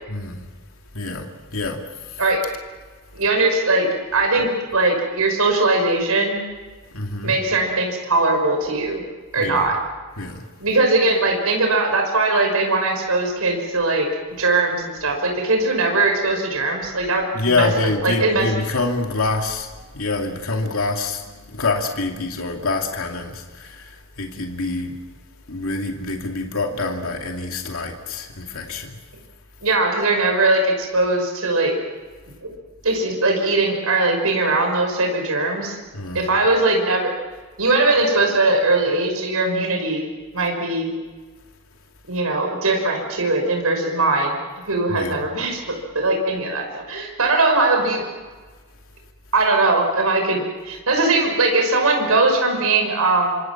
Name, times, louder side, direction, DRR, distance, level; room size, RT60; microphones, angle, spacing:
voice 1, 0.1-0.5 0.9-1.8 2.1-2.2 6.9-7.4 9.4-9.7 10.2-10.4 17.3-19.7 19.9-21.2 21.5-25.0 25.5-29.0 35.9-36.3 44.9-45.2, left 3 dB, 70° left, 2 dB, 2.6 m, -26 dB
voice 2, 3.1-6.4 7.2-9.0 9.3-9.8 10.6-14.1 14.4-17.7 18.0-18.5 29.6-31.7 32.4-32.5 32.8-35.8 36.1-37.1 37.6-40.1 40.3-40.9 42.1-44.4 44.7-45.6 45.9-48.0 49.3-53.4, right 2 dB, 80° right, 2 dB, 5.8 m, -20 dB
26.5 x 26.5 x 6.1 m, 1.4 s
head